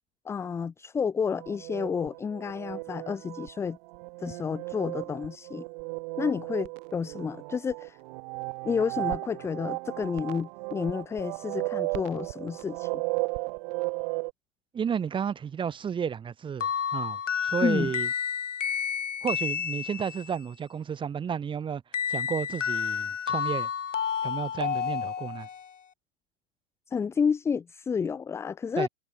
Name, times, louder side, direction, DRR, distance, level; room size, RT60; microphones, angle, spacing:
voice 1, 0.2-3.8 4.2-5.6 6.2-8.0 8.6-13.0 17.6-17.9 26.9-28.9, left 6 dB, 5° left, 0.8 m, -30 dB
sound 1, 1.3-14.3, right 26 dB, 40° right, 7.8 m, -35 dB
voice 2, 14.7-18.1 19.2-21.8 22.1-23.7 24.2-25.5 28.8-28.9, right 7 dB, 15° right, 5.2 m, -32 dB
sound 2, 16.6-20.3 21.9-25.7, left 7 dB, 85° left, 6.0 m, -30 dB
hypercardioid pair, 145°, 36 cm